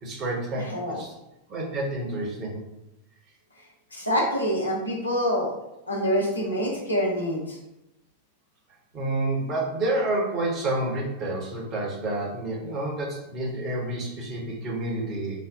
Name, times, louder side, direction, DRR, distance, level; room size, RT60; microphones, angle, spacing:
voice 1, 0.0-1.1 1.5-2.6 8.9-15.5, right 2 dB, 30° right, -2 dB, 1.1 m, -29 dB
voice 2, 0.5-1.0 3.9-5.5 5.9-7.6, equal, 80° left, -2 dB, 0.8 m, -26 dB
5.2 x 2.1 x 2.6 m, 0.88 s
figure-of-eight pair, 90°, 0 cm